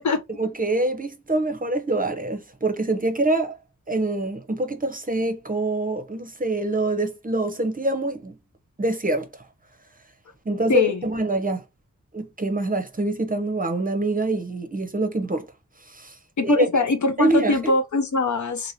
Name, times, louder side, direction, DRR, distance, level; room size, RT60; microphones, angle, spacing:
voice 1, 0.4-3.5 3.9-8.4 8.8-9.3 10.5-11.6 12.1-15.5 15.9-16.1 16.4-16.8 17.2-17.7, right 2 dB, 25° right, 0.6 m, -25 dB
voice 2, 16.4-18.7, left 3 dB, 60° left, 0.6 m, -22 dB
2.9 x 2.8 x 2.7 m
wide cardioid pair, 60°, 33 cm